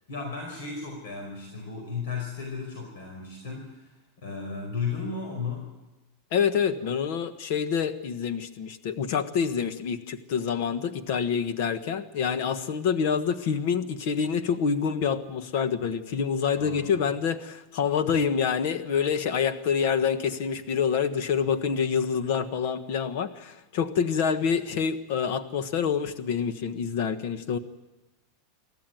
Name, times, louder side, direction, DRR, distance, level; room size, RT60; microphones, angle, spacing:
voice 1, 0.1-3.9 4.2-5.7 16.5-16.8, left 5 dB, 70° left, 2 dB, 4.9 m, -34 dB
voice 2, 6.3-27.6, left 6 dB, 45° left, 11 dB, 1.3 m, -27 dB
24.0 x 14.5 x 9.3 m, 1.1 s
supercardioid pair, 180°, 0 cm